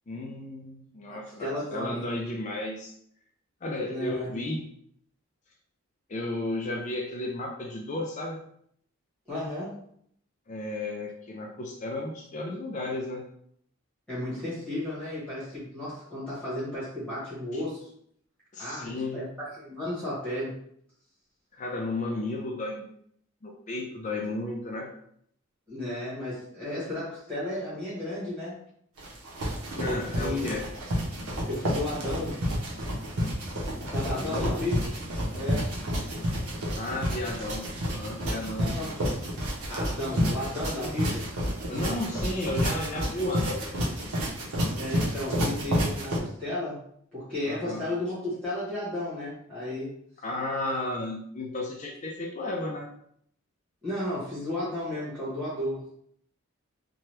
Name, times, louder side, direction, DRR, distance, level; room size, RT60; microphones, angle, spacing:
voice 1, 0.1-2.9 3.6-4.7 6.1-8.4 10.5-13.2 17.5-17.6 18.5-19.2 21.5-22.9 23.4-24.9 29.7-30.6 34.0-34.6 36.7-38.9 41.7-43.7 47.4-47.8 50.2-52.9, left 2 dB, 35° left, 1 dB, 0.3 m, -33 dB
voice 2, 1.1-2.0 3.9-4.3 9.3-9.8 14.1-17.9 18.6-19.3 19.6-20.6 25.7-28.6 29.8-30.5 31.5-32.4 33.9-34.9 35.3-35.7 38.5-39.1 39.7-41.3 44.7-46.8 47.1-49.9 53.8-55.9, left 1 dB, 5° left, -11 dB, 1.1 m, -33 dB
sound 1, 29.0-46.2, equal, 90° right, 0.8 m, -30 dB
2.8 x 2.2 x 3.1 m, 0.68 s
head